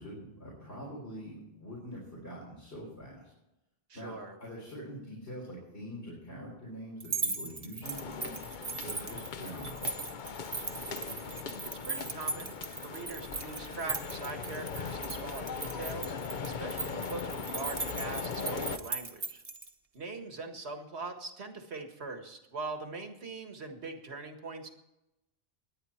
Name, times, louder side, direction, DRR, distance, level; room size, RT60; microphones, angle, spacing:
voice 1, 0.0-3.3 3.9-8.4 8.8-9.9, equal, 75° left, -4 dB, 4.2 m, -44 dB
voice 2, 3.9-4.4 9.0-9.3 11.6-12.6 12.8-16.1 16.4-19.4 19.9-24.7, right 3 dB, 85° right, 6 dB, 1.9 m, -42 dB
sound 1, 7.0-19.7, right 3 dB, 35° right, 1.0 m, -38 dB
sound 2, 7.8-18.8, left 5 dB, 50° left, 0.8 m, -39 dB
21.5 x 9.5 x 4.4 m, 0.93 s
omnidirectional pair, 1.1 m